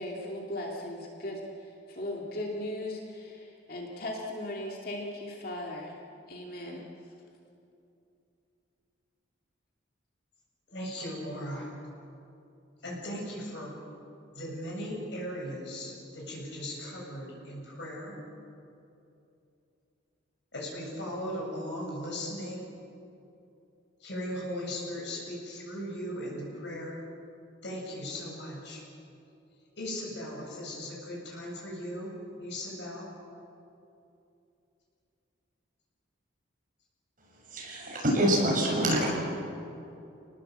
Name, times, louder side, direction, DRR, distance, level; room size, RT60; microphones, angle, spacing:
voice 1, 0.0-6.0 6.3-7.1, left 1 dB, 50° left, -1 dB, 2.6 m, -38 dB
voice 2, 10.7-11.7 12.8-13.7 14.3-18.2 20.5-22.6 24.0-27.0 27.6-28.8 29.7-32.1 32.4-33.1, equal, 65° left, -2 dB, 7.7 m, -38 dB
voice 3, 37.5-39.1, right 1 dB, 45° right, -3 dB, 7.1 m, -26 dB
29.0 x 19.5 x 8.1 m, 2.7 s
head